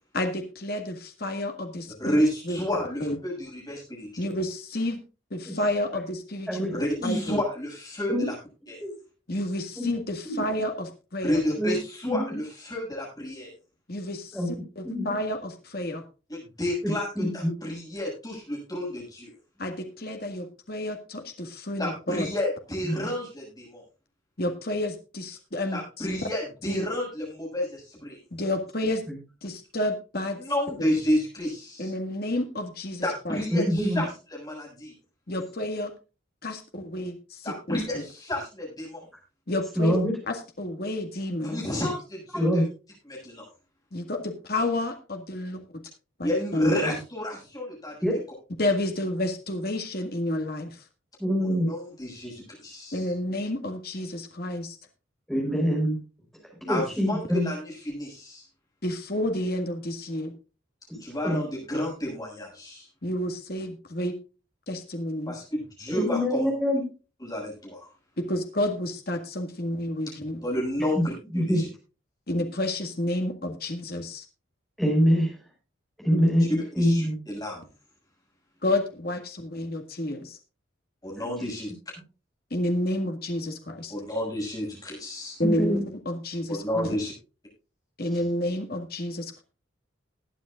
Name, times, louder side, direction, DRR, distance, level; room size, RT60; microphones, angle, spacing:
voice 1, 0.1-2.7 3.0-3.2 4.2-5.0 5.3-7.4 9.3-11.4 13.9-16.0 19.6-22.3 24.4-26.1 26.6-26.9 28.3-29.0 29.4-30.4 31.8-33.4 35.3-35.9 36.4-38.0 39.5-40.0 40.3-41.6 43.9-45.8 46.2-46.7 48.6-50.8 52.9-54.8 58.8-60.3 63.0-64.2 64.7-65.3 68.2-70.4 72.3-74.2 78.6-80.4 82.5-83.9 85.4-85.8 86.0-87.0 88.0-89.4, left 1 dB, 50° left, 5 dB, 1.8 m, -30 dB
voice 2, 2.0-4.3 6.7-8.3 8.7-8.8 11.2-13.5 16.3-19.3 21.8-23.8 25.7-28.2 30.4-31.9 33.0-34.9 37.4-39.1 41.4-42.6 43.1-43.5 46.2-48.0 51.4-53.1 56.7-58.4 61.0-62.9 65.3-66.5 67.2-67.9 70.4-71.7 76.8-77.6 81.0-81.7 83.9-85.4 86.5-87.1, left 1 dB, 20° left, -2 dB, 7.2 m, -31 dB
voice 3, 7.0-7.3 8.1-8.3 8.8-8.9 9.8-9.9 10.2-10.4 11.6-11.8 12.1-12.2 14.3-14.5 14.8-15.1 16.8-17.5 22.8-23.0 33.5-34.0 39.8-40.1 42.3-42.6 46.7-47.0 48.0-48.2 51.2-51.7 55.3-56.0 56.6-57.5 60.9-61.0 61.2-61.4 65.9-66.9 71.0-71.1 71.3-71.6 74.8-75.4 76.0-77.2 81.2-81.5 85.4-85.8, equal, ahead, -1 dB, 5.4 m, -25 dB
20.5 x 9.4 x 2.5 m, 0.32 s
head